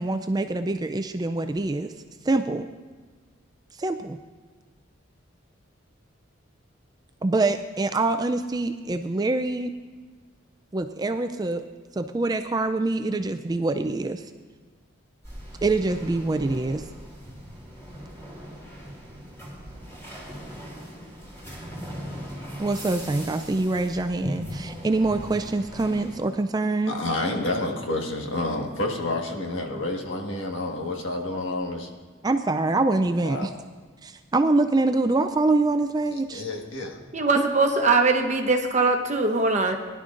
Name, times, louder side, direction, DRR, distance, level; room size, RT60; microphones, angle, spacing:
voice 1, 0.0-1.9 2.3-2.7 3.8-4.2 7.2-9.7 10.7-11.6 11.9-14.2 15.6-16.8 22.6-27.0 32.2-33.5 34.0-36.4, right 2 dB, 20° right, 8 dB, 0.3 m, -25 dB
sound 1, 15.2-26.2, equal, 15° left, 2.9 m, -39 dB
voice 2, 26.9-31.9 33.2-33.5 36.3-37.0, left 2 dB, 70° left, 2 dB, 1.5 m, -29 dB
voice 3, 37.1-39.8, right 3 dB, 35° right, 4 dB, 0.9 m, -21 dB
20.0 x 11.0 x 2.5 m, 1.4 s
head